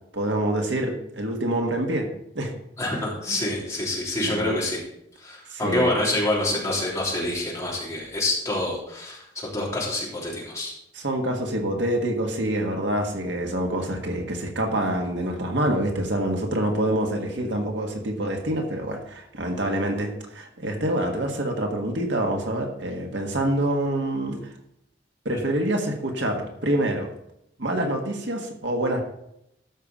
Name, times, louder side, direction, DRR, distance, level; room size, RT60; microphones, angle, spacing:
voice 1, 0.1-2.1 2.4-2.5 3.3-3.4 4.2-4.6 5.5-5.9 11.0-24.5 25.3-27.1 27.6-29.0, right 1 dB, 75° right, 2 dB, 1.7 m, -26 dB
voice 2, 2.8-4.8 5.2-10.7 25.3-25.4, left 1 dB, 15° left, -5 dB, 3.4 m, -27 dB
13.0 x 5.7 x 5.1 m, 0.78 s
head